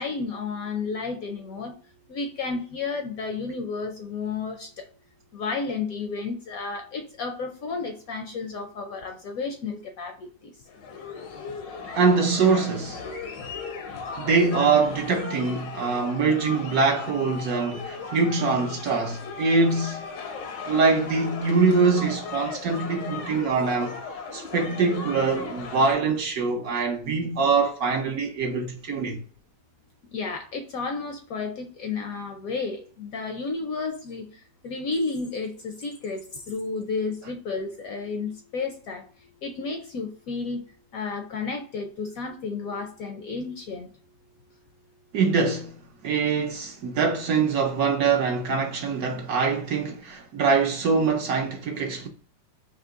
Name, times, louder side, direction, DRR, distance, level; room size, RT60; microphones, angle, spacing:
voice 1, 0.0-1.7 2.1-4.9 5.3-10.5 30.1-34.3 34.6-39.1 39.4-40.6 40.9-43.9, left 4 dB, 70° left, 0.8 m, -32 dB
sound 1, 10.7-25.9, left 5 dB, 90° left, 1.5 m, -37 dB
voice 2, 11.9-13.0 14.2-20.0 20.7-24.0 24.3-29.2 45.1-45.7 46.0-52.1, right 4 dB, 70° right, 0.9 m, -23 dB
3.7 x 2.8 x 3.6 m
omnidirectional pair, 1.9 m